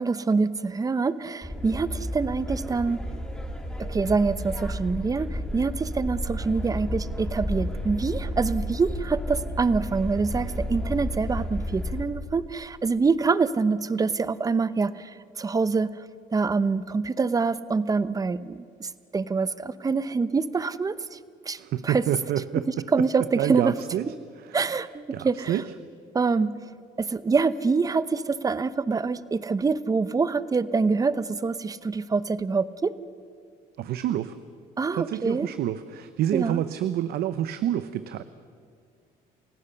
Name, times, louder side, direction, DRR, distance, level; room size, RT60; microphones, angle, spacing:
voice 1, 0.0-3.0 3.8-15.1 15.4-15.9 16.3-21.2 21.5-21.6 21.8-22.0 22.7-23.7 24.1-24.2 24.5-25.6 26.1-26.5 27.0-32.9 34.8-35.5 36.3-36.6, right 4 dB, 20° right, 15 dB, 0.8 m, -25 dB
sound 1, 1.4-12.0, equal, 5° left, 3.0 m, -32 dB
voice 2, 21.6-22.6 23.4-24.1 25.1-25.6 33.8-34.3 34.9-38.2, right 11 dB, 70° right, 12 dB, 0.8 m, -28 dB
28.5 x 16.5 x 6.9 m, 2.2 s
cardioid pair, 110°, 17 cm